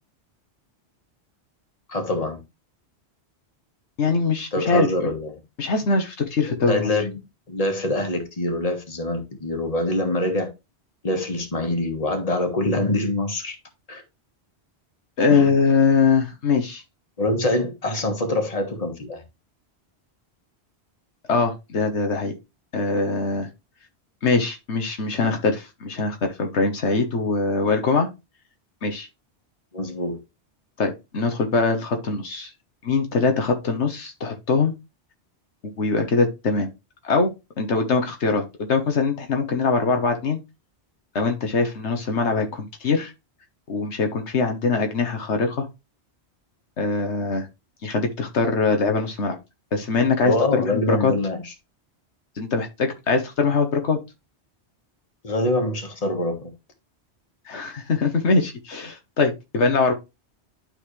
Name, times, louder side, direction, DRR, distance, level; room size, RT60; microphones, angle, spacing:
voice 1, 1.9-2.4 4.5-5.3 6.7-7.2 7.5-10.5 11.0-13.6 13.9-14.0 15.3-15.5 17.2-19.2 29.7-30.2 50.2-51.5 55.2-56.5, left 1 dB, 35° left, 1.6 m, -25 dB
voice 2, 4.0-5.1 5.6-6.9 15.2-16.8 21.3-22.3 22.7-23.5 24.2-28.1 28.8-29.1 30.8-32.5 32.8-34.7 35.8-36.7 37.0-40.4 41.1-43.1 43.7-45.7 46.8-47.5 47.8-49.4 49.7-51.1 52.4-54.0 57.5-59.9, left 4 dB, 85° left, 1.5 m, -22 dB
11.5 x 3.9 x 3.2 m
omnidirectional pair, 1.1 m